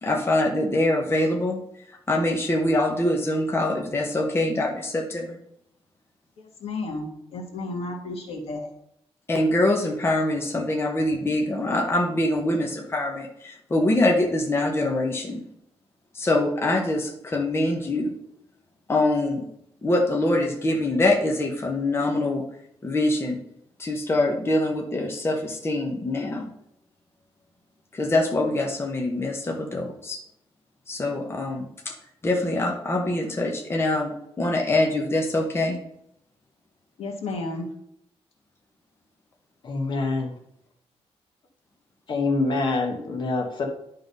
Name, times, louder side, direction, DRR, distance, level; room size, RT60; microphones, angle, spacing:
voice 1, 0.0-1.6 2.1-5.4 9.3-15.4 16.1-18.1 18.9-19.4 19.8-22.4 22.8-23.4 23.8-26.5 27.9-30.2 30.9-31.9 32.2-34.1 34.4-35.8, left 1 dB, 25° left, 1 dB, 1.0 m, -24 dB
voice 2, 6.4-8.7 37.0-37.7, left 2 dB, 70° left, 2 dB, 1.8 m, -32 dB
voice 3, 39.6-40.3 42.1-43.7, left 3 dB, 45° left, 0 dB, 1.3 m, -25 dB
11.0 x 3.8 x 5.3 m, 0.74 s
wide cardioid pair, 160°, 11 cm